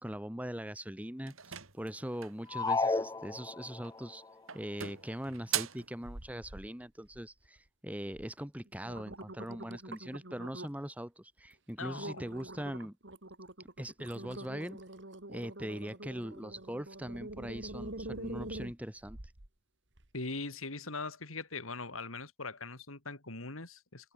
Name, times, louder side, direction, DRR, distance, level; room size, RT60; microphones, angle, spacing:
voice 1, 0.0-4.2 4.5-13.0 13.8-14.8 15.3-19.2, equal, 5° right, 1.7 m, -41 dB
sound 1, 1.3-2.5 3.7-4.1 4.5-5.9, right 11 dB, 85° right, 4.2 m, -39 dB
sound 2, 2.5-4.0, left 3 dB, 15° left, 0.4 m, -32 dB
sound 3, 6.0-6.7 7.1-7.6 8.1-8.3 8.7-10.9 11.4-11.5 12.0-19.5 20.0-20.1, right 1 dB, 60° right, 2.5 m, -45 dB
voice 2, 11.8-12.2 20.1-24.1, left 3 dB, 85° left, 3.7 m, -41 dB
head